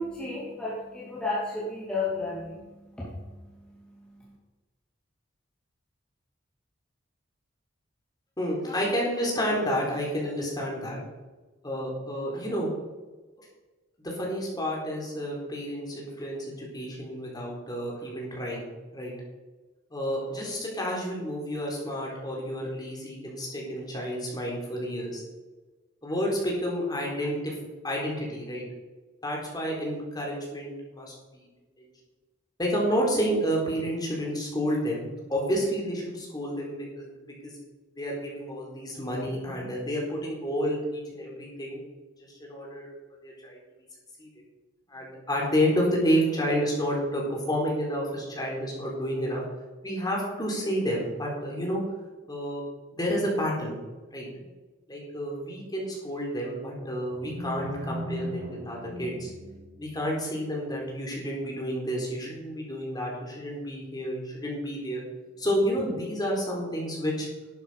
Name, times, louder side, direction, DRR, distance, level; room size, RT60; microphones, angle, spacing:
voice 1, 0.0-4.3, left 2 dB, 5° left, -8 dB, 2.5 m, -34 dB
voice 2, 8.4-11.0 11.6-12.7 13.4-13.5 14.0-19.1 19.9-25.2 26.0-27.6 27.8-28.6 29.2-31.5 32.6-35.0 35.3-37.5 38.0-41.8 42.4-42.9 43.2-43.6 44.2-44.3 44.9-49.4 49.8-51.8 52.3-52.6 52.9-53.8 54.1-54.3 54.9-59.3 59.8-65.0 65.4-67.3, equal, 20° left, -2 dB, 3.8 m, -30 dB
sound 1, 57.1-60.1, equal, 75° right, 2.3 m, -38 dB
11.5 x 9.5 x 5.0 m, 1.2 s
head